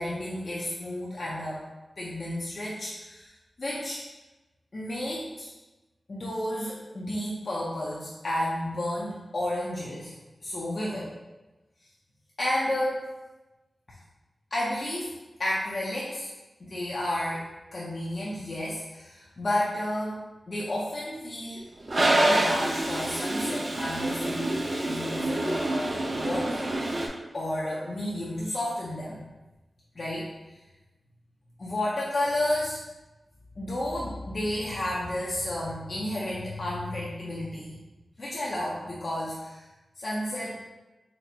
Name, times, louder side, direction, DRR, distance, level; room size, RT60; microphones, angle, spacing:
voice 1, 0.0-1.6 2.0-3.3 3.6-4.0 4.7-5.5 6.1-10.1 10.4-11.1 12.4-13.1 13.9-14.0 14.5-15.1 15.4-16.3 16.6-17.4 17.7-21.7 22.0-26.7 27.3-29.2 30.0-30.3 31.6-32.8 33.6-37.7 38.2-39.6 40.0-40.6, left 1 dB, 55° left, -6 dB, 0.5 m, -31 dB
Toilet flush, 21.9-27.1, right 1 dB, 50° right, 0.5 m, -27 dB
4.2 x 2.0 x 2.6 m, 1.1 s
cardioid pair, 60°, 0 cm